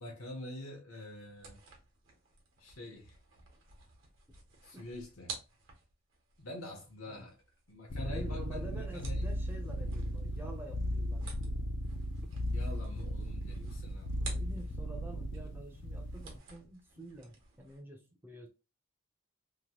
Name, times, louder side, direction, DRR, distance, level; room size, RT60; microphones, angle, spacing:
voice 1, 0.0-1.6 2.6-3.2 4.6-5.4 6.4-7.4 7.7-9.2 12.5-14.1, left 1 dB, 80° left, 0.9 m, -46 dB
sound 1, 1.3-15.0 15.3-17.8, right 3 dB, 65° right, 1.0 m, -52 dB
sound 2, 7.9-16.4, equal, 55° left, 0.4 m, -36 dB
voice 2, 8.0-11.7 12.2-12.3 14.2-18.5, right 1 dB, 10° right, 0.4 m, -48 dB
2.9 x 2.1 x 2.8 m
head